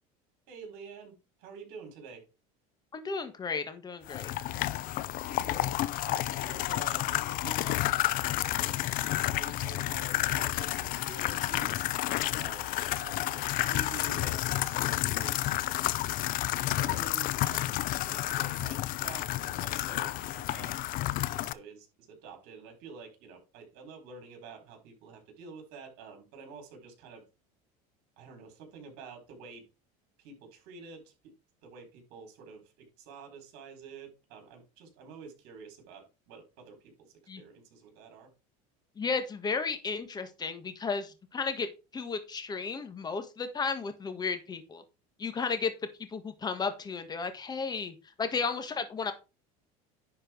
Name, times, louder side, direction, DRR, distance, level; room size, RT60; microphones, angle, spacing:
voice 1, 0.5-1.1 1.4-2.2 5.0-8.7 9.2-11.9 12.3-15.8 16.5-20.8 21.3-27.2 28.2-29.6 30.2-31.1 31.6-36.9 37.4-38.3, right 5 dB, 65° right, 4 dB, 4.4 m, -48 dB
voice 2, 2.9-4.3 37.3-37.4 39.0-44.8 45.2-45.7 46.1-49.1, left 5 dB, 20° left, 10 dB, 1.6 m, -34 dB
sound 1, 4.1-21.5, left 15 dB, 50° left, 0.6 m, -31 dB
10.5 x 4.7 x 4.5 m, 0.29 s
supercardioid pair, 130°, 18 cm